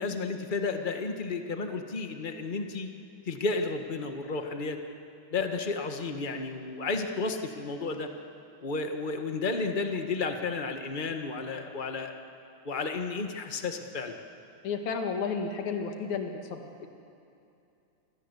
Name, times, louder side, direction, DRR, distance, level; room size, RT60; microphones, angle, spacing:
voice 1, 0.0-2.9 3.3-4.8 5.3-8.1 8.6-12.1 12.6-14.2, left 3 dB, 40° left, 5 dB, 0.6 m, -32 dB
voice 2, 14.6-16.9, left 5 dB, 70° left, 4 dB, 3.3 m, -32 dB
28.5 x 25.0 x 8.3 m, 2.7 s
omnidirectional pair, 3.6 m